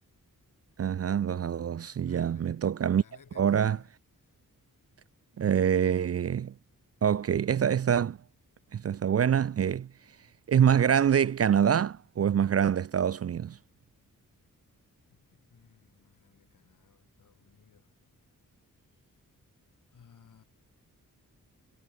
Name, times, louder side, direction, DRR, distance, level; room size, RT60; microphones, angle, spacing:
voice 1, 0.8-3.0 3.4-3.8 5.4-6.5 7.0-8.2 8.7-9.9 10.5-13.6, right 8 dB, 45° right, 0.5 m, -25 dB
voice 2, 2.0-2.7 3.0-3.9 4.2-4.3 15.1-17.9 18.9-19.2 19.9-20.4, left 7 dB, 65° left, 3.9 m, -59 dB
wide cardioid pair, 130°, 33 cm